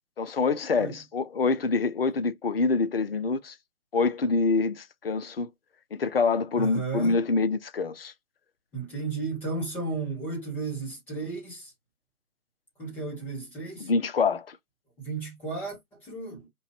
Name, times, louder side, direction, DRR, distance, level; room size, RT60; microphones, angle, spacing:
voice 1, 0.2-3.5 3.9-5.5 5.9-8.1 13.8-14.6, left 4 dB, 45° left, 0.5 m, -26 dB
voice 2, 6.6-7.2 8.7-11.7 12.8-13.9 15.0-16.5, right 3 dB, 5° left, 0.9 m, -34 dB
4.9 x 3.0 x 2.9 m
figure-of-eight pair, 145°, 44 cm